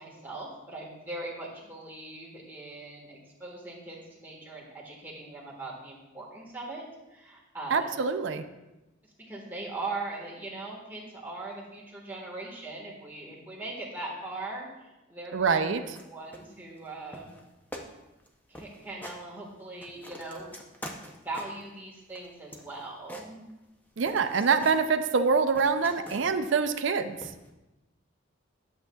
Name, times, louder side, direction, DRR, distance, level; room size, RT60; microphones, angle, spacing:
voice 1, 0.0-6.8 7.1-7.9 9.2-15.6 16.1-17.3 18.5-20.5 21.2-23.6, right 2 dB, 10° right, -3 dB, 1.4 m, -40 dB
voice 2, 7.7-8.4 15.3-15.8 24.0-27.2, right 5 dB, 65° right, 9 dB, 0.4 m, -25 dB
sound 1, 15.9-16.1 16.3-16.9 17.1-17.4 17.7-17.9 18.2-18.3 18.5-19.2 19.6-21.7 22.1-23.8 24.1-24.8 25.2-26.5 27.2-27.5, equal, 10° left, 0.5 m, -45 dB
11.5 x 7.3 x 2.3 m, 1.0 s
head